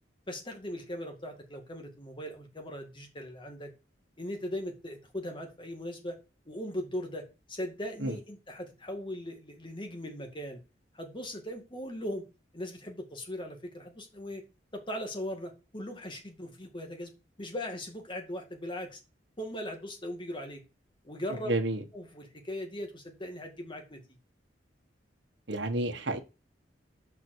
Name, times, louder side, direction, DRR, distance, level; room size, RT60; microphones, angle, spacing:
voice 1, 0.3-3.7 4.2-6.2 6.5-10.6 10.9-12.2 12.5-14.4 14.7-17.1 17.4-19.0 19.4-20.6 21.0-21.5 21.9-24.0, left 1 dB, 25° left, 3 dB, 2.1 m, -39 dB
voice 2, 21.5-21.8 25.5-26.2, right 2 dB, 85° right, 4 dB, 1.5 m, -30 dB
6.4 x 5.6 x 6.5 m, 0.29 s
head